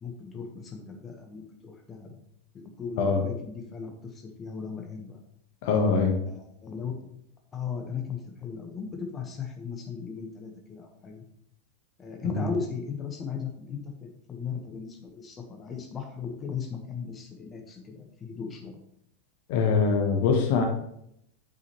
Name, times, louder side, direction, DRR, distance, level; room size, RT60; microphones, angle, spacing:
voice 1, 0.0-2.2 2.5-5.2 6.3-7.1 7.5-11.2 12.0-18.8, left 6 dB, 20° left, 2 dB, 1.1 m, -37 dB
voice 2, 5.6-6.2 12.2-12.4 19.5-20.6, left 5 dB, 50° left, 3 dB, 1.2 m, -23 dB
9.2 x 5.5 x 3.0 m, 0.75 s
figure-of-eight pair, 90°, 0 cm